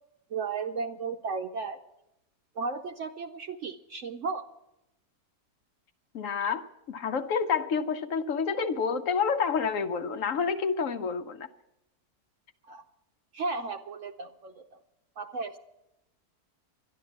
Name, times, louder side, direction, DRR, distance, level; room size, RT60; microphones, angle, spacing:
voice 1, 0.3-1.8 2.6-4.4 12.7-12.8 13.3-14.8 15.2-15.6, right 4 dB, 65° right, 5 dB, 0.9 m, -34 dB
voice 2, 6.1-11.5, left 6 dB, 65° left, 9 dB, 1.0 m, -29 dB
11.5 x 11.0 x 7.1 m, 0.89 s
omnidirectional pair, 1.6 m